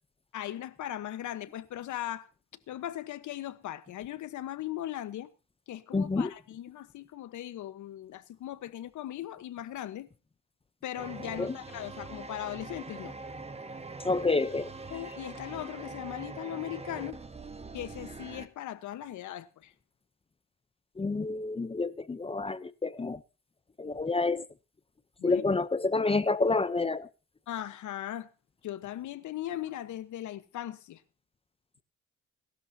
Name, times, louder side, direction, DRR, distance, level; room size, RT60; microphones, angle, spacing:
voice 1, 0.3-2.3 2.7-5.3 5.7-10.1 10.8-13.1 14.9-17.2 17.7-19.7 25.2-25.5 27.5-28.3 28.6-31.0, left 12 dB, 75° left, 1.2 m, -38 dB
voice 2, 5.9-6.3 11.4-11.6 14.0-14.7 21.0-23.2 23.8-24.4 25.2-27.1, left 3 dB, 20° left, 0.7 m, -28 dB
sound 1, 11.0-18.5, right 3 dB, 20° right, 1.3 m, -43 dB
23.0 x 12.0 x 2.8 m
cardioid pair, 90°, 30 cm